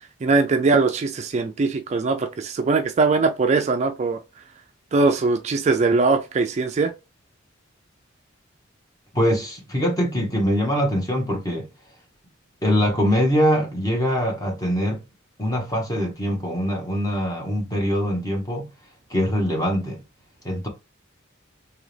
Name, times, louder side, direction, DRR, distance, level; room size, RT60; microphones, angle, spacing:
voice 1, 0.2-4.2 4.9-6.9, right 3 dB, 35° right, 0.3 m, -21 dB
voice 2, 9.1-11.7 12.6-15.0 15.4-18.7 19.1-20.0 20.4-20.7, equal, 20° left, 1.2 m, -23 dB
3.7 x 2.8 x 3.3 m
head